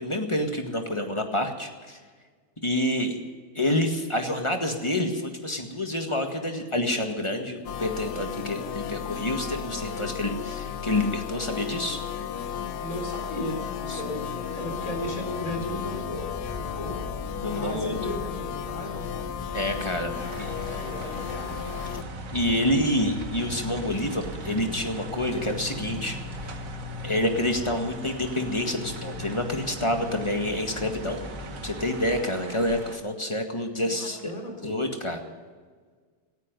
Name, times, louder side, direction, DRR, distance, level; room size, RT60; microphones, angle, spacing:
voice 1, 0.0-2.0 2.6-3.2 3.6-12.0 13.9-14.0 17.4-18.1 19.5-20.6 22.3-26.2 27.0-31.2 31.6-34.2 34.6-35.2, left 1 dB, 20° left, 4 dB, 1.8 m, -28 dB
sound 1, 7.7-22.0, left 8 dB, 75° left, 1.3 m, -34 dB
voice 2, 12.8-16.4 16.8-17.0 17.5-19.1 20.5-21.8 33.8-34.8, left 1 dB, 55° left, 2 dB, 4.5 m, -36 dB
sound 2, 14.6-32.2, left 1 dB, 5° right, 4.5 m, -40 dB
sound 3, 20.2-33.0, right 4 dB, 55° right, 1.9 m, -43 dB
18.5 x 14.0 x 5.4 m, 1.6 s
omnidirectional pair, 1.7 m